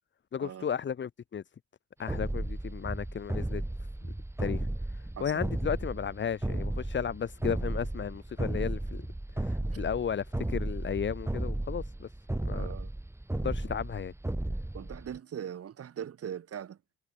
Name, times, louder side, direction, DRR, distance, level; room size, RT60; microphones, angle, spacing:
voice 1, 0.3-1.4 2.0-3.6 4.0-4.1 4.4-4.7 4.9-9.1 9.3-12.1 12.4-12.7 13.3-14.1, left 7 dB, 40° left, 1.0 m, -34 dB
sound 1, 2.1-15.2, right 1 dB, 10° right, 2.4 m, -34 dB
voice 2, 12.5-12.9 14.7-16.8, right 9 dB, 50° right, 1.5 m, -40 dB
cardioid pair, 90°, 30 cm